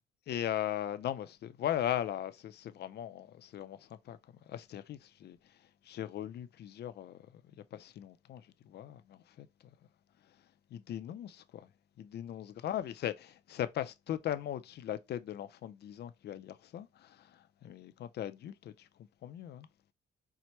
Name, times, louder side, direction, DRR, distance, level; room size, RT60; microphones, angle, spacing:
voice 1, 0.3-4.2 4.5-5.4 5.8-9.5 10.7-11.7 12.0-18.9 19.2-19.7, left 11 dB, 55° left, 0.4 m, -39 dB
4.5 x 2.1 x 2.8 m
cardioid pair, 90°, 20 cm